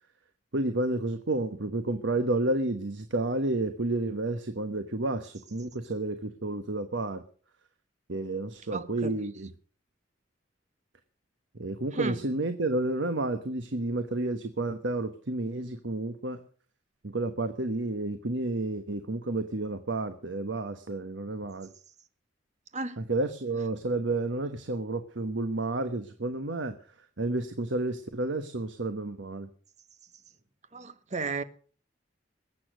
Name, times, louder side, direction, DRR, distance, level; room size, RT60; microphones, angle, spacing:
voice 1, 0.5-7.2 8.1-9.5 11.6-16.4 17.1-21.7 23.0-26.7 27.2-29.5, right 2 dB, 75° right, 1.2 m, -31 dB
voice 2, 8.7-9.1 11.9-12.2 22.7-23.0 30.7-31.4, right 3 dB, 40° right, 1.2 m, -34 dB
21.0 x 8.7 x 6.2 m
head